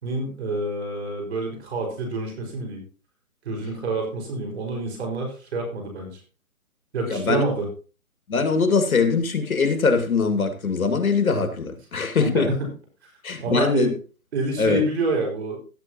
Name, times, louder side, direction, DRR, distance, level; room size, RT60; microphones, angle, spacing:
voice 1, 0.0-2.8 3.5-6.2 6.9-7.7 12.2-12.6 13.0-13.1 13.4-13.9 14.3-15.6, right 2 dB, 50° right, 5.2 m, -27 dB
voice 2, 7.1-7.5 8.3-12.5 13.2-13.9 14.6-14.8, left 4 dB, 75° left, 2.3 m, -22 dB
16.5 x 8.3 x 2.9 m
hypercardioid pair, 155°, 43 cm